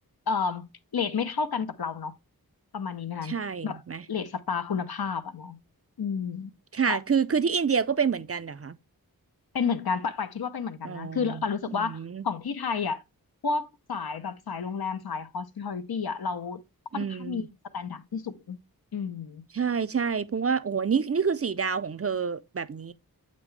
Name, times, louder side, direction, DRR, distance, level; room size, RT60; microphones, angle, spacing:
voice 1, 0.3-2.1 2.7-3.4 3.6-3.8 4.1-5.6 6.0-6.5 6.9-7.0 9.5-13.0 13.4-16.6 16.9-17.5 17.7-18.6 18.9-19.4, left 5 dB, 75° left, 0.7 m, -31 dB
voice 2, 3.2-4.0 6.7-8.8 10.8-12.2 16.9-17.5 19.5-22.9, right 6 dB, 40° right, 0.5 m, -28 dB
8.0 x 5.3 x 3.2 m
wide cardioid pair, 60°, 37 cm